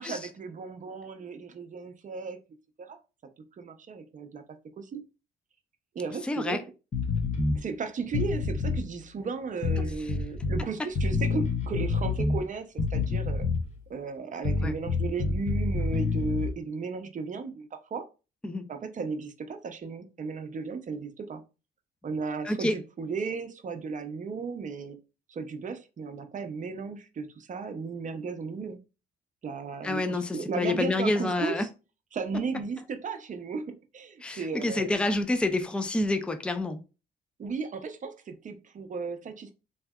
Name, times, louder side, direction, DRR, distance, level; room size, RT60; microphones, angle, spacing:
voice 1, 0.0-2.4 2.8-3.0 3.6-4.4 4.8-5.0 5.9-6.6 7.5-13.5 13.9-18.1 18.7-21.4 22.0-25.0 25.3-28.8 29.4-31.7 32.1-34.9 37.4-39.5, right 5 dB, 40° right, 0.6 m, -35 dB
voice 2, 6.2-6.6 14.6-14.8 18.4-18.7 22.4-22.8 29.8-31.7 34.2-36.8, left 2 dB, 5° left, 0.4 m, -28 dB
sound 1, 6.9-7.6 8.1-8.8 9.6-10.6 10.9-12.4 12.8-13.7 14.4-16.5, left 4 dB, 35° left, 0.7 m, -27 dB
3.2 x 2.7 x 2.3 m
cardioid pair, 90°, 20 cm